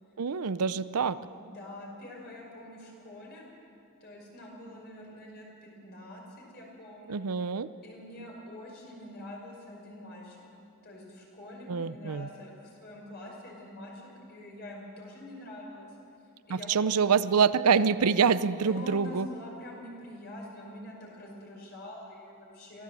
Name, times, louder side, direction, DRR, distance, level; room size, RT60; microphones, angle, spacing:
voice 1, 0.2-1.2 7.1-7.7 11.7-12.3 16.5-19.3, right 6 dB, 85° right, 14 dB, 0.6 m, -26 dB
voice 2, 1.3-3.5 4.0-7.2 7.8-10.4 10.8-14.0 14.3-15.9 16.5-17.1 18.5-22.8, left 1 dB, 45° left, -1 dB, 5.5 m, -45 dB
24.0 x 15.5 x 7.7 m, 2.6 s
head